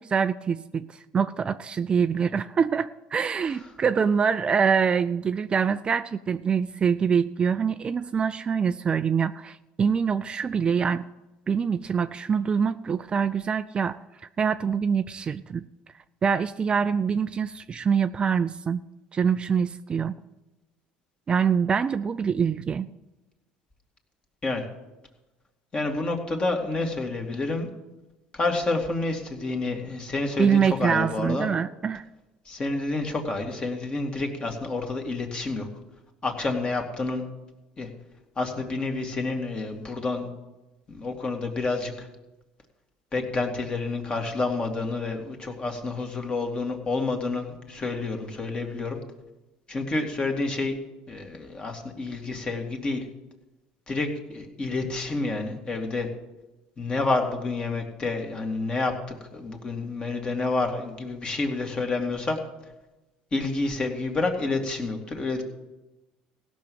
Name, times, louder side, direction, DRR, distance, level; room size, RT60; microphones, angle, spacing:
voice 1, 0.0-11.0 11.5-14.0 14.4-15.6 16.2-18.8 19.1-20.1 21.3-22.9 30.4-32.1, right 6 dB, 30° right, 12 dB, 0.4 m, -25 dB
voice 2, 25.7-27.7 28.3-31.5 32.5-35.7 36.2-37.2 37.8-37.9 38.4-40.3 40.9-42.1 43.1-49.0 49.7-50.8 51.1-53.0 53.9-56.1 56.8-58.9 59.3-62.4 63.3-65.4, left 3 dB, 30° left, 3 dB, 2.2 m, -29 dB
16.0 x 6.3 x 7.1 m, 1.1 s
supercardioid pair, 105°, 3 cm